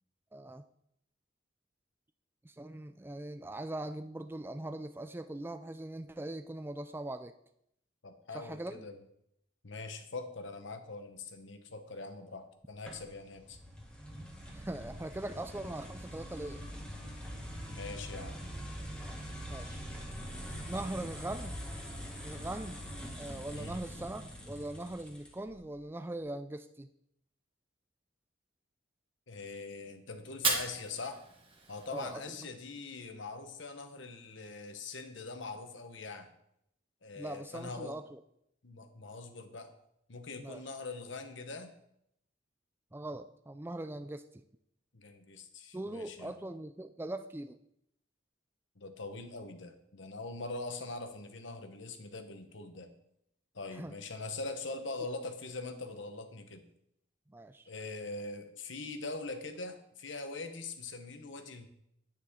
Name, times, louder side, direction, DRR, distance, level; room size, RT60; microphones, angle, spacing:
voice 1, 0.3-0.6 2.4-7.3 8.3-8.8 14.5-16.7 19.5-19.8 20.4-21.6 22.2-22.9 23.1-26.9 31.9-32.4 37.2-38.2 40.4-40.6 42.9-44.4 45.7-47.6 53.7-53.9 57.3-57.7, right 1 dB, 10° right, 10 dB, 0.3 m, -41 dB
voice 2, 8.0-9.0 9.6-13.6 17.7-18.4 23.5-23.8 29.3-31.2 31.7-36.3 37.0-38.0 38.6-39.7 40.1-41.7 44.9-46.4 48.8-52.9 53.5-56.6 57.7-61.7, left 3 dB, 65° left, 7 dB, 1.2 m, -42 dB
sound 1, 12.9-25.6, equal, 5° left, 1.6 m, -43 dB
Fire, 30.3-32.3, right 4 dB, 25° right, 1.4 m, -35 dB
10.5 x 9.9 x 3.8 m, 0.76 s
head